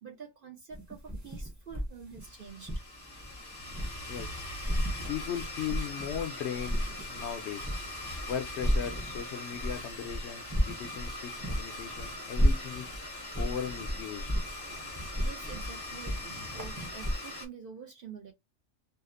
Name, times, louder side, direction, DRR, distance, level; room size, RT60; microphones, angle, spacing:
voice 1, 0.0-2.8 15.2-18.3, right 6 dB, 55° right, 0.6 m, -47 dB
sound 1, 0.7-4.3 4.6-6.3 6.5-17.2, equal, 15° right, 0.7 m, -33 dB
Domestic sounds home sounds, 2.2-17.5, left 1 dB, 25° left, 0.6 m, -41 dB
voice 2, 5.1-7.7 8.3-12.9 13.3-14.3, left 8 dB, 65° left, 0.8 m, -38 dB
2.8 x 2.0 x 2.4 m
omnidirectional pair, 1.3 m